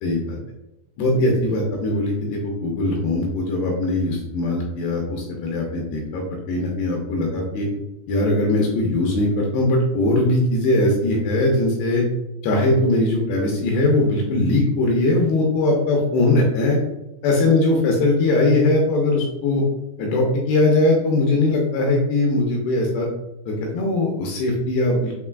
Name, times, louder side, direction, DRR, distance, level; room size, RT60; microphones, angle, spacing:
voice 1, 0.0-0.4 1.0-7.7 8.1-12.0 12.4-16.8 17.2-19.6 20.0-23.1 23.5-25.2, left 2 dB, 80° left, -1 dB, 2.5 m, -20 dB
6.6 x 2.6 x 2.3 m, 0.92 s
omnidirectional pair, 5.1 m